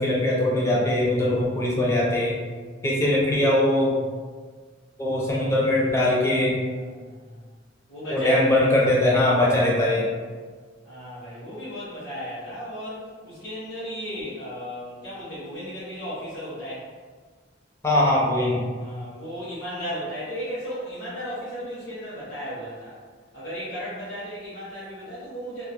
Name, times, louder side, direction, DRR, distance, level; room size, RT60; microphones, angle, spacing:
voice 1, 0.0-2.3 2.8-4.0 5.0-6.6 8.1-10.1 17.8-18.6, left 1 dB, 15° left, -4 dB, 0.4 m, -21 dB
voice 2, 3.1-3.4 6.6-7.4 7.9-8.7 10.8-16.9 18.8-23.0 23.3-25.6, equal, 60° left, -11 dB, 0.8 m, -35 dB
2.2 x 2.0 x 2.8 m, 1.5 s
head